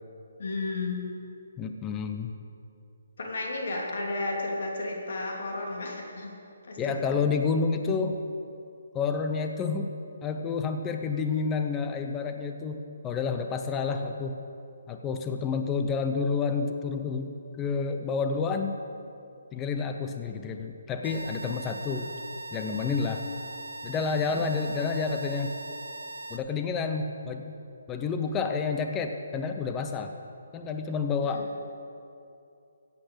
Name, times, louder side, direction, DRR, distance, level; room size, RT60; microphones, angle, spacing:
voice 1, 0.4-1.0 3.2-6.3 6.7-7.3 31.2-31.4, left 2 dB, 55° left, 0 dB, 3.0 m, -33 dB
voice 2, 1.6-2.3 6.8-8.2 8.9-9.9 10.2-14.4 14.9-18.8 19.5-22.1 22.5-23.2 23.8-25.6 26.3-27.6 27.9-30.1 30.5-31.6, left 5 dB, 10° left, 6 dB, 0.6 m, -29 dB
sound 1, 21.0-26.4, right 2 dB, 80° right, 1.2 m, -40 dB
15.5 x 8.4 x 8.0 m, 2.6 s
hypercardioid pair, 165°, 0 cm